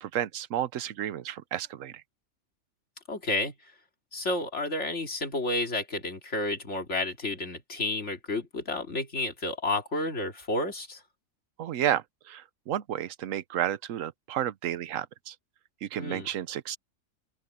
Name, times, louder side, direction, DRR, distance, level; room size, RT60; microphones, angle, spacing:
voice 1, 0.0-2.0 11.6-15.3 15.8-16.8, right 11 dB, 75° right, 1.1 m, -32 dB
voice 2, 3.1-3.5 4.1-11.0 16.0-16.3, left 2 dB, 60° left, 3.0 m, -31 dB
open air
omnidirectional pair, 1.4 m